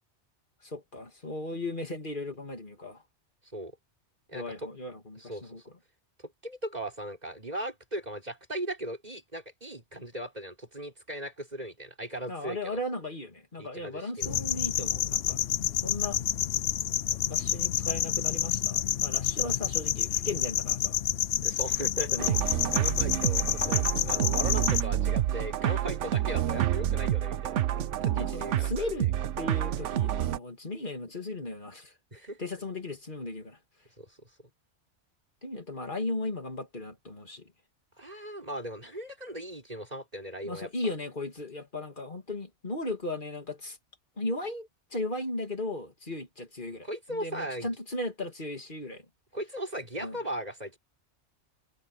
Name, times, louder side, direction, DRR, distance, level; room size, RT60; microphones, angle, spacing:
voice 1, 0.6-3.0 4.3-5.6 12.3-15.4 15.8-16.2 17.3-21.0 22.1-22.4 24.2-24.3 28.1-29.1 29.4-31.9 32.4-33.6 35.4-37.5 40.4-43.8 44.2-49.0 50.0-50.2, left 2 dB, 45° left, 3.1 m, -36 dB
voice 2, 4.3-4.7 5.2-5.7 6.2-12.8 13.6-14.3 17.1-17.2 21.4-22.4 22.7-29.1 32.1-32.4 34.0-34.5 38.0-40.7 46.7-47.7 49.3-50.8, right 1 dB, 35° right, 5.9 m, -38 dB
sound 1, 14.2-24.8, left 10 dB, 65° left, 0.8 m, -29 dB
sound 2, 22.2-30.4, right 11 dB, 85° right, 1.0 m, -28 dB
omnidirectional pair, 1.2 m